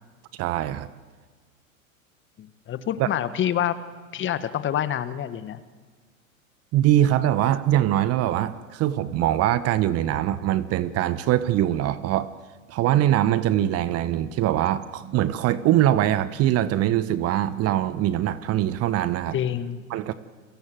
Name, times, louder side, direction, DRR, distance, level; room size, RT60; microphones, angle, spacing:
voice 1, 0.4-0.9 3.0-3.1 6.7-12.3 12.7-19.3 19.9-20.1, right 12 dB, 35° right, 14 dB, 1.3 m, -22 dB
voice 2, 2.4-3.8 4.1-5.6 19.3-19.9, left 10 dB, 25° left, 12 dB, 1.5 m, -27 dB
30.0 x 23.5 x 7.8 m, 1.4 s
figure-of-eight pair, 95°, 42 cm